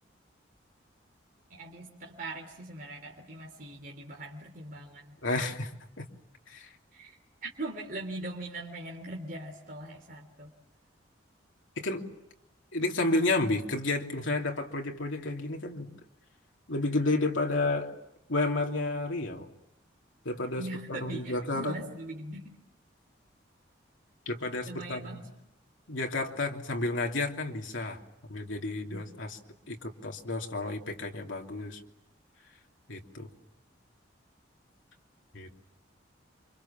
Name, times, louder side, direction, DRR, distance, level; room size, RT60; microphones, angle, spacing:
voice 1, 1.5-5.1 6.9-10.5 20.6-22.5 24.7-25.3 28.9-29.0, right 1 dB, 45° right, 0 dB, 3.4 m, -41 dB
voice 2, 5.2-5.7 6.0-6.1 6.5-6.7 11.8-12.0 12.7-15.9 16.7-17.9 18.3-19.5 20.2-21.8 24.3-25.2 25.9-28.0 28.3-29.4 29.7-31.8 32.9-33.3 35.3-35.5, left 2 dB, 90° left, 2 dB, 3.1 m, -31 dB
29.0 x 26.0 x 7.4 m, 0.87 s
head